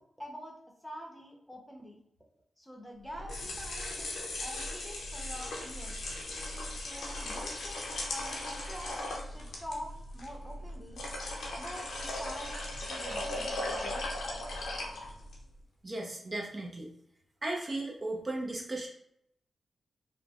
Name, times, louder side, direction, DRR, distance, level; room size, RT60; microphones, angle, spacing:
voice 1, 0.2-0.6 0.8-2.0 2.6-6.1 6.7-11.0 11.5-14.1, equal, 5° left, 0 dB, 0.7 m, -46 dB
sound 1, 3.1-15.4, left 1 dB, 80° left, 0.6 m, -38 dB
voice 2, 15.8-16.9 17.4-18.9, right 2 dB, 35° right, -1 dB, 0.6 m, -36 dB
3.1 x 2.1 x 2.3 m, 0.73 s
supercardioid pair, 45°, 0 cm